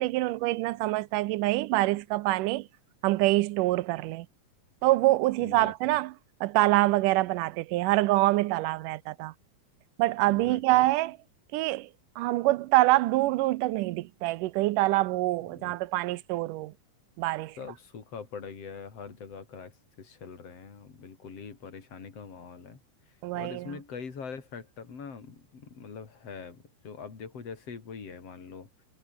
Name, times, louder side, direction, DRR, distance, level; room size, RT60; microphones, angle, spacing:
voice 1, 0.0-2.7 3.0-4.3 4.8-6.1 6.4-9.3 10.0-11.2 11.5-11.9 12.2-16.7 17.2-17.6 23.2-23.8, right 18 dB, 85° right, 2.3 m, -25 dB
voice 2, 5.4-6.0 10.3-10.8 15.5-15.8 17.6-19.7 20.0-22.8 23.3-28.7, left 5 dB, 50° left, 5.0 m, -43 dB
omnidirectional pair, 3.7 m